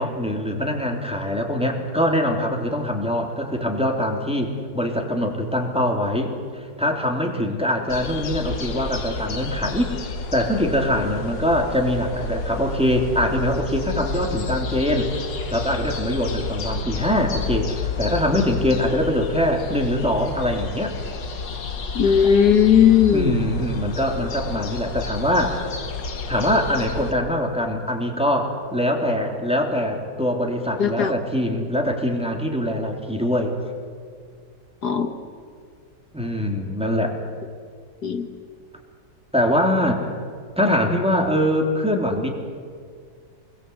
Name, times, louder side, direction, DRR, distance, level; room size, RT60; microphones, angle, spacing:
voice 1, 0.0-10.0 10.3-15.1 15.4-20.9 23.1-25.6 26.3-33.5 36.1-37.1 39.3-40.1 40.6-42.3, left 1 dB, 5° right, 1 dB, 3.1 m, -23 dB
sound 1, 7.9-27.1, left 4 dB, 85° left, 2.4 m, -31 dB
voice 2, 22.0-23.4 30.8-31.1 34.8-35.1 38.0-38.3, left 8 dB, 65° left, 6 dB, 1.8 m, -17 dB
28.0 x 22.0 x 8.2 m, 2.1 s
omnidirectional pair, 1.9 m